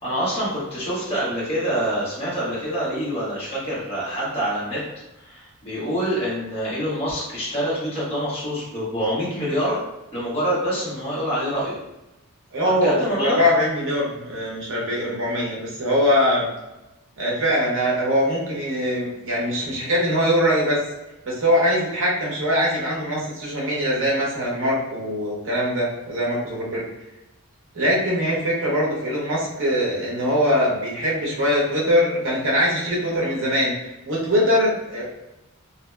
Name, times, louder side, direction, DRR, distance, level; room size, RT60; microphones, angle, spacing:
voice 1, 0.0-4.8 5.2-9.8 10.1-11.8 12.8-13.4, equal, 25° left, -10 dB, 1.1 m, -26 dB
voice 2, 12.5-16.5 17.2-20.8 21.2-26.8 27.7-33.7 34.1-35.0, equal, 60° right, -4 dB, 0.8 m, -22 dB
2.8 x 2.7 x 2.2 m, 0.98 s
head